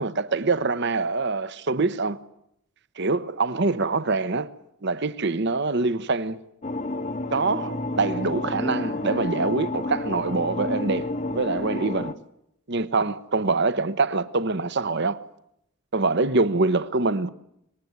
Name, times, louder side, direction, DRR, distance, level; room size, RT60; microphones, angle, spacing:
voice 1, 0.0-2.2 3.0-4.5 4.8-6.4 7.3-12.1 12.7-15.2 15.9-17.3, right 3 dB, 55° right, 1.0 m, -25 dB
sound 1, 6.6-12.1, left 2 dB, 35° left, 1.0 m, -30 dB
25.5 x 20.5 x 9.5 m
head